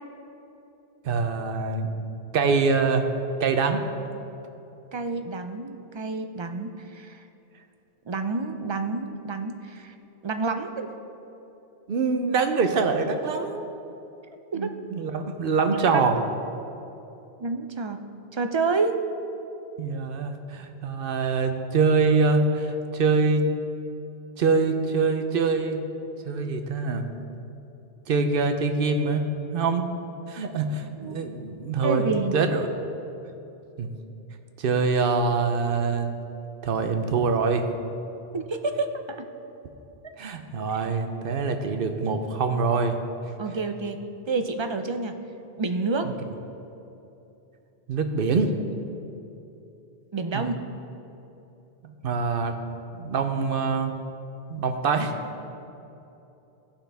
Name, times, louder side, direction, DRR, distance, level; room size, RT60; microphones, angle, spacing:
voice 1, 1.0-1.9 2.3-3.1 3.4-3.8 11.9-13.7 14.5-16.2 19.8-23.4 24.4-25.8 26.2-27.1 28.1-29.3 29.5-29.9 30.3-32.7 33.8-33.9 34.6-36.1 36.6-37.6 40.2-43.0 46.0-46.1 47.9-48.6 50.3-50.5 51.8-52.5 52.9-54.0 54.5-55.1, right 4 dB, 65° right, 6 dB, 0.9 m, -24 dB
voice 2, 4.9-7.2 8.1-9.9 10.2-10.9 14.5-14.7 15.9-16.0 17.4-18.0 18.3-19.0 31.0-31.2 31.8-32.3 38.3-39.2 43.4-44.0 44.3-45.1 45.6-46.2 50.1-50.6, right 4 dB, 45° right, 7 dB, 0.3 m, -28 dB
15.0 x 5.7 x 3.4 m, 2.9 s
omnidirectional pair, 1.1 m